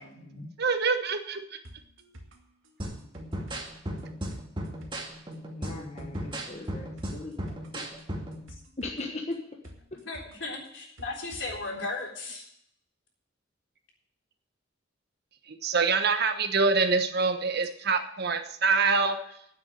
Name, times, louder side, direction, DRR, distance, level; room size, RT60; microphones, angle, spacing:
voice 1, 0.0-0.5 10.0-12.5, left 3 dB, 70° left, -1 dB, 3.8 m, -36 dB
voice 2, 0.6-1.6 15.5-19.2, right 4 dB, 55° right, 8 dB, 1.2 m, -25 dB
sound 1, 1.6-11.7 12.0-12.1, equal, 80° right, 2.1 m, -51 dB
sound 2, 2.8-8.4, equal, 25° right, 2.1 m, -36 dB
voice 3, 5.6-8.0 8.8-9.4, left 2 dB, 35° left, 1 dB, 1.3 m, -39 dB
9.8 x 8.0 x 9.2 m, 0.72 s
head